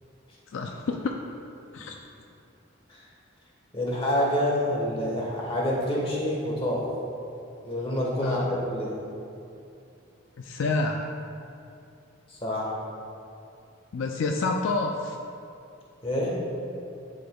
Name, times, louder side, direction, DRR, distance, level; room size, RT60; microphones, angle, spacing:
voice 1, 0.5-1.1 1.7-2.0 8.2-8.5 10.4-11.1 13.9-15.2, left 3 dB, 70° left, 2 dB, 0.4 m, -28 dB
voice 2, 3.7-6.8 7.6-8.9 12.3-12.7 16.0-16.3, left 1 dB, 25° left, -4 dB, 1.2 m, -27 dB
11.5 x 5.2 x 2.3 m, 2.6 s
head